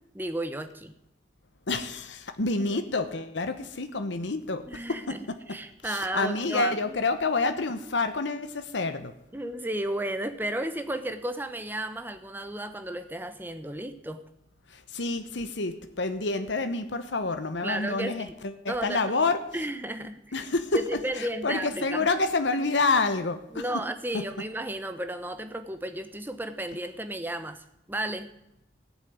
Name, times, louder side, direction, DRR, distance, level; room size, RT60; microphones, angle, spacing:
voice 1, 0.1-0.9 2.7-2.8 4.7-7.0 9.3-14.2 17.6-18.3 18.7-19.1 19.5-20.2 20.7-22.1 23.5-28.3, right 1 dB, 10° right, 9 dB, 0.9 m, -33 dB
voice 2, 1.7-4.6 4.9-5.4 5.8-9.1 14.7-19.4 20.3-20.8 21.1-23.6 24.1-24.2, left 3 dB, 80° left, 9 dB, 1.0 m, -28 dB
16.0 x 7.3 x 9.4 m, 0.81 s
head